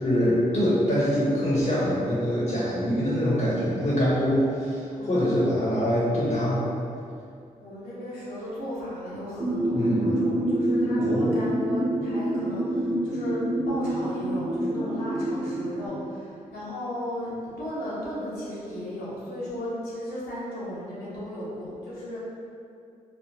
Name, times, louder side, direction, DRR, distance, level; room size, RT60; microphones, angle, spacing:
voice 1, 0.0-6.7 9.7-10.2 11.0-11.3, equal, 60° left, -8 dB, 0.9 m, -24 dB
voice 2, 7.6-13.4 13.7-22.2, left 1 dB, 85° left, -9 dB, 0.9 m, -35 dB
sound 1, 9.4-15.9, right 1 dB, 55° right, 0.8 m, -27 dB
3.3 x 2.0 x 2.7 m, 2.4 s
supercardioid pair, 45°, 16 cm